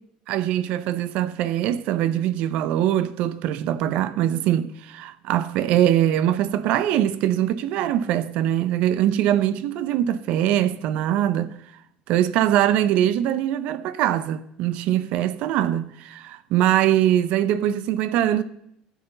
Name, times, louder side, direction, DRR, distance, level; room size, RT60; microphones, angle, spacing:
voice 1, 0.3-11.5 12.1-18.4, right 11 dB, 55° right, 0.5 m, -22 dB
13.5 x 8.0 x 3.8 m
cardioid pair, 165°, 3 cm